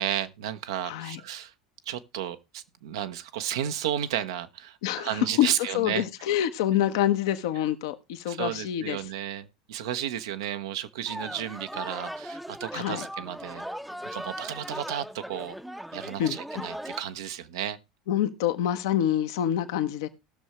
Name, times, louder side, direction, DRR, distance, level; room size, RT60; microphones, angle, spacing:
voice 1, 0.0-1.5 1.9-6.0 8.3-13.6 14.0-15.6 15.9-17.8, right 10 dB, 75° right, 0.8 m, -33 dB
voice 2, 0.9-1.2 4.8-5.5 5.7-9.0 12.7-13.1 16.2-16.4 18.1-20.1, left 11 dB, 70° left, 1.0 m, -26 dB
sound 1, 11.1-17.0, equal, ahead, 0.7 m, -38 dB
19.0 x 6.4 x 3.0 m
hypercardioid pair, 80°, 2 cm